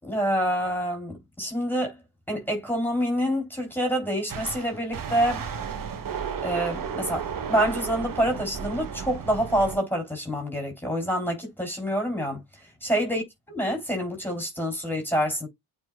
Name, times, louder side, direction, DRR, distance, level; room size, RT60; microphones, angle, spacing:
voice 1, 0.0-1.9 2.3-5.4 6.4-12.4 12.8-15.5, equal, 5° left, 3.8 m, -27 dB
sound 1, 4.3-9.8, right 7 dB, 55° right, 1.4 m, -33 dB
9.1 x 4.3 x 2.4 m
cardioid pair, 70°, 39 cm